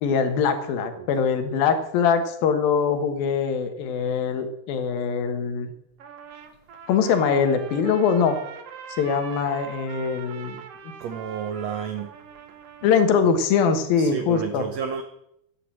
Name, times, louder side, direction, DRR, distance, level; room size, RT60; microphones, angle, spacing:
voice 1, 0.0-5.7 6.9-8.4 9.0-10.6 12.8-14.7, left 6 dB, 80° left, 3.1 m, -22 dB
Trumpet, 6.0-13.1, right 7 dB, 60° right, 1.8 m, -42 dB
voice 2, 11.0-12.1 13.2-13.3 14.0-15.0, right 7 dB, 80° right, 1.5 m, -31 dB
13.5 x 9.9 x 7.5 m
omnidirectional pair, 4.1 m